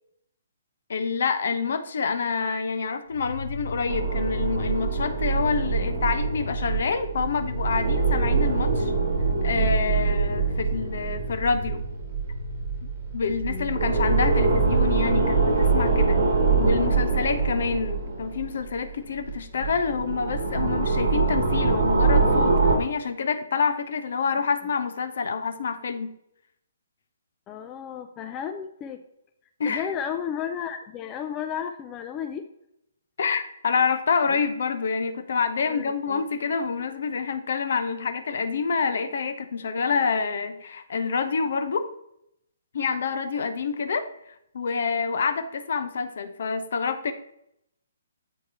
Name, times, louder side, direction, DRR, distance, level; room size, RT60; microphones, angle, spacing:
voice 1, 0.9-8.9 9.4-11.8 13.1-16.2 16.6-26.1 29.6-29.9 33.2-41.9 42.7-47.1, left 5 dB, 50° left, 9 dB, 0.7 m, -27 dB
sound 1, 3.1-17.9, equal, 85° left, 0.8 m, -37 dB
sound 2, 3.9-18.9 19.3-22.8, right 4 dB, 45° right, 1.2 m, -24 dB
voice 2, 13.5-14.1 27.5-29.0 29.7-32.5 34.3-34.4 35.6-36.2, left 8 dB, 20° left, 6 dB, 0.4 m, -33 dB
8.1 x 4.6 x 4.4 m, 0.76 s
figure-of-eight pair, 130°, 0 cm